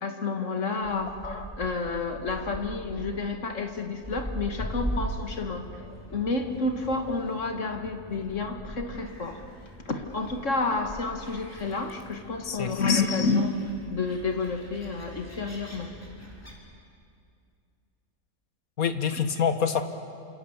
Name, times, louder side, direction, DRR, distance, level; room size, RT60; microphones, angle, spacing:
voice 1, 0.0-5.7 6.1-9.4 9.9-13.5 13.9-15.9, left 3 dB, 55° left, 5 dB, 2.0 m, -30 dB
Gull seagull, 0.8-16.5, right 1 dB, 10° left, 4.5 m, -41 dB
voice 2, 12.4-13.1 18.8-19.8, left 6 dB, 70° left, 8 dB, 1.9 m, -26 dB
28.0 x 26.5 x 7.2 m, 2.4 s
omnidirectional pair, 1.5 m